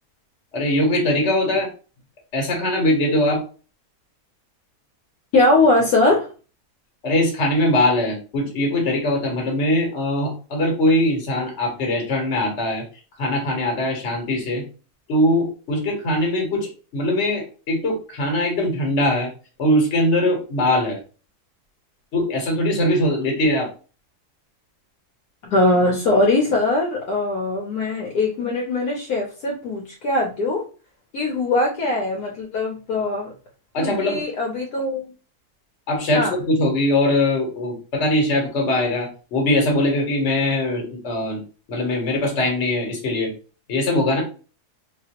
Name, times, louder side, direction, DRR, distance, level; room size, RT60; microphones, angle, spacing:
voice 1, 0.5-1.7 2.3-3.4 7.0-12.8 13.2-14.6 15.1-19.3 19.6-21.0 22.1-23.7 33.7-34.2 35.9-41.4 41.7-43.3 43.7-44.2, left 1 dB, 50° left, 1 dB, 1.4 m, -21 dB
voice 2, 5.3-6.3 25.4-30.6 31.1-33.3 33.8-35.1 36.1-36.4, left 2 dB, 70° left, -1 dB, 1.2 m, -21 dB
4.1 x 2.4 x 2.9 m, 0.36 s
omnidirectional pair, 1.7 m